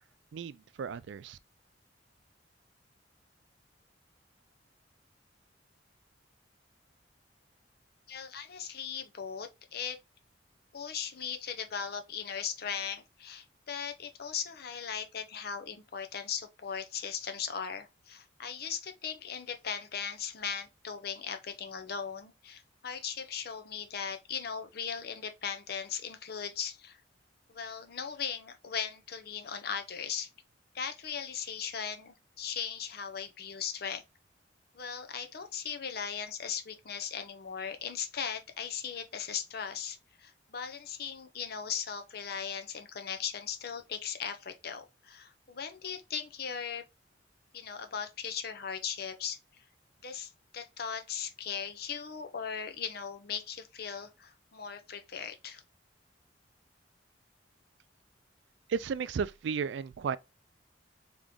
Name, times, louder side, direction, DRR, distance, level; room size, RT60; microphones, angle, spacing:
voice 1, 0.3-1.4 58.7-60.2, right 6 dB, 70° right, 0.3 m, -34 dB
voice 2, 8.1-10.0 10.7-27.0 27.5-30.3 30.7-34.0 34.7-46.8 47.5-49.6 50.0-55.6, left 7 dB, 55° left, 0.6 m, -38 dB
3.8 x 3.0 x 3.5 m
head